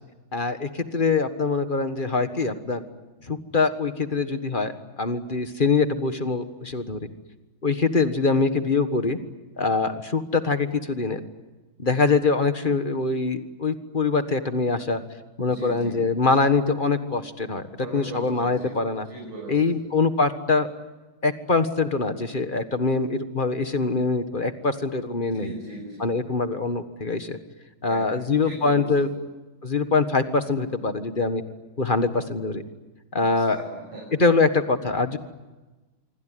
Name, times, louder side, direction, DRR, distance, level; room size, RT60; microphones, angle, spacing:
voice 1, 0.3-2.8 3.3-4.7 5.0-7.0 7.6-9.2 9.6-11.2 11.8-15.0 15.4-17.6 17.9-19.1 19.5-20.7 21.2-25.5 26.0-27.4 27.8-29.1 29.6-31.4 31.8-32.6 33.1-33.6 34.2-35.2, left 4 dB, 25° left, 9 dB, 1.4 m, -23 dB
voice 2, 15.4-16.1 17.8-18.8 19.1-19.8 25.3-26.1 27.8-28.0 28.3-29.1 33.1-34.0, right 2 dB, 75° right, -2 dB, 7.1 m, -38 dB
27.0 x 24.0 x 9.2 m, 1.2 s
omnidirectional pair, 2.3 m